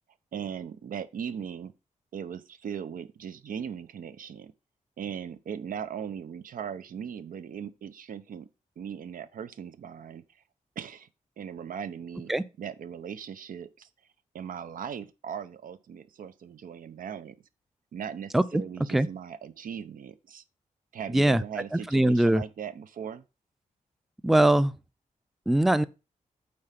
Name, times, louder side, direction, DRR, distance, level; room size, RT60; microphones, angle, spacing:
voice 1, 0.3-1.7 2.1-4.5 5.0-8.5 8.8-10.2 10.8-11.1 11.4-12.3 12.6-13.9 14.3-17.4 17.9-20.4 20.9-23.2, right 8 dB, 85° right, 0.8 m, -38 dB
voice 2, 21.7-22.4 24.2-24.7 25.5-25.8, right 1 dB, ahead, 0.4 m, -22 dB
8.6 x 4.4 x 5.8 m
wide cardioid pair, 125°, 14 cm